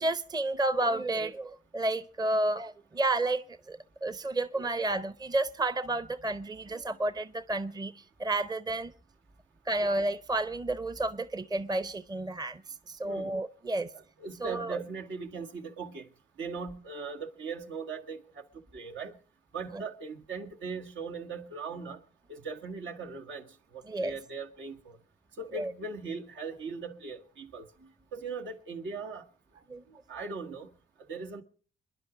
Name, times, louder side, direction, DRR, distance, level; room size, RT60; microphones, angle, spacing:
voice 1, 0.0-8.9 9.7-12.6 12.9-13.9 14.4-14.8 19.7-19.8 23.9-24.1 25.5-25.7 29.7-30.0, right 2 dB, 20° right, 0.8 m, -31 dB
voice 2, 13.0-13.4 13.9-16.1 16.4-18.4 18.7-19.2 19.5-22.0 22.3-25.0 25.4-27.7 28.1-29.3 30.1-30.7 31.1-31.4, right 4 dB, 75° right, 1.7 m, -39 dB
27.0 x 10.5 x 5.0 m
cardioid pair, 90°, 20 cm